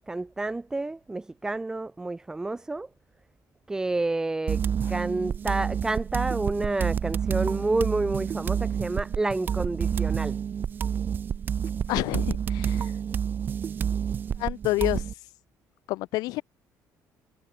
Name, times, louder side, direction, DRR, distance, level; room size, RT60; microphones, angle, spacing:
voice 1, 0.1-2.9 3.7-10.4, right 2 dB, 10° right, 1.4 m, -29 dB
sound 1, 4.5-15.1, right 8 dB, 30° right, 1.4 m, -29 dB
voice 2, 11.9-12.9 14.4-15.1 15.9-16.4, left 19 dB, 80° left, 1.4 m, -28 dB
cardioid pair, 175°, 6 cm